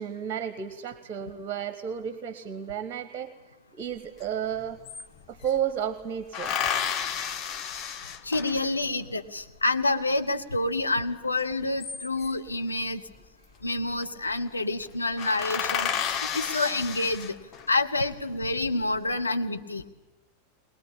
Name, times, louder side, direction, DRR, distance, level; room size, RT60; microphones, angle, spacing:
voice 1, 0.0-3.3 3.8-4.8 5.3-6.5, right 9 dB, 35° right, 11 dB, 1.1 m, -32 dB
sound 1, 4.2-4.3 4.5-5.6 6.3-8.9 11.5-12.5 13.7-14.0 14.4-14.5 14.8-14.9 15.2-17.7 18.3-19.0, left 8 dB, 30° left, 1.0 m, -32 dB
voice 2, 8.2-13.0 13.6-15.9 16.3-17.3 17.7-19.8, left 2 dB, 80° left, 6 dB, 1.0 m, -28 dB
21.0 x 21.0 x 8.7 m, 1.1 s
figure-of-eight pair, 90°, 0 cm